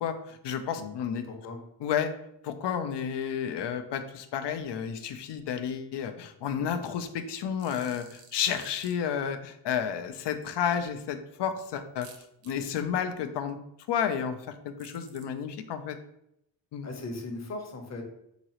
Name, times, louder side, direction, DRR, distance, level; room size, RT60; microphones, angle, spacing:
voice 1, 0.0-1.2 1.8-2.1 2.4-12.1 12.4-13.6 13.9-16.0 16.7-16.9, left 8 dB, 60° left, 9 dB, 0.6 m, -31 dB
voice 2, 1.2-1.6 16.8-18.0, left 2 dB, 35° left, 3 dB, 0.9 m, -38 dB
sound 1, 7.6-8.9 12.0-12.5 14.8-15.2, right 6 dB, 70° right, 0.8 m, -51 dB
3.8 x 3.0 x 2.9 m, 0.77 s
cardioid pair, 70°, 47 cm